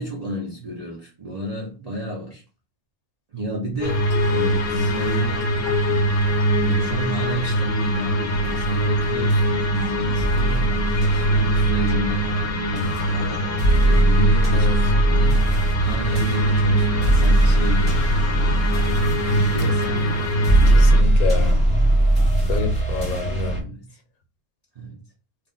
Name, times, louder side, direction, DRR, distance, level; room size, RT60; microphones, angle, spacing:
voice 1, 0.0-2.4 3.3-6.2 6.6-20.3 23.4-24.0 24.8-25.0, right 1 dB, 65° right, 0.3 m, -32 dB
sound 1, 3.8-21.0, right 1 dB, 60° left, 0.7 m, -22 dB
sound 2, 8.3-23.6, right 1 dB, 10° right, 0.9 m, -21 dB
voice 2, 20.7-21.6 22.5-23.6, left 4 dB, 80° left, 1.1 m, -27 dB
2.5 x 2.2 x 3.7 m
omnidirectional pair, 1.5 m